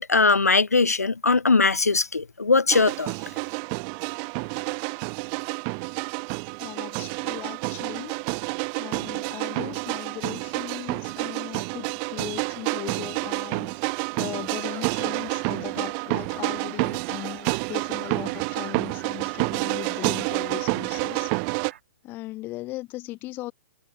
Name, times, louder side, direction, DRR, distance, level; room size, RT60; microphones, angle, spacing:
voice 1, 0.0-3.1, left 4 dB, 80° left, 0.4 m, -20 dB
sound 1, 2.7-21.7, right 40 dB or more, 30° right, 1.5 m, -29 dB
voice 2, 6.6-21.3 22.0-23.5, left 18 dB, 25° left, 2.5 m, -38 dB
Geese at Finley National Refuge Oregon, 14.4-21.8, right 10 dB, 50° right, 6.6 m, -48 dB
figure-of-eight pair, 120°, 8 cm